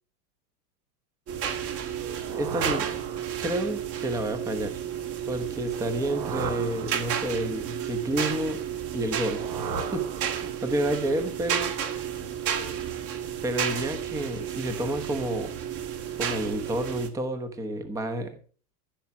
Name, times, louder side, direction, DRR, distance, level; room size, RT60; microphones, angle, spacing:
sound 1, 1.3-17.1, right 9 dB, 30° right, 1.6 m, -32 dB
sound 2, 1.9-3.8 5.7-7.5 9.0-10.8, right 4 dB, 80° right, 4.8 m, -37 dB
voice 1, 2.3-2.9 3.4-4.8 5.3-8.6 8.9-9.4 9.9-10.0 10.4-11.7 13.4-15.5 16.2-18.4, right 1 dB, 5° right, 9 dB, 0.9 m, -30 dB
15.0 x 7.2 x 5.8 m, 0.42 s
supercardioid pair, 150°, 47 cm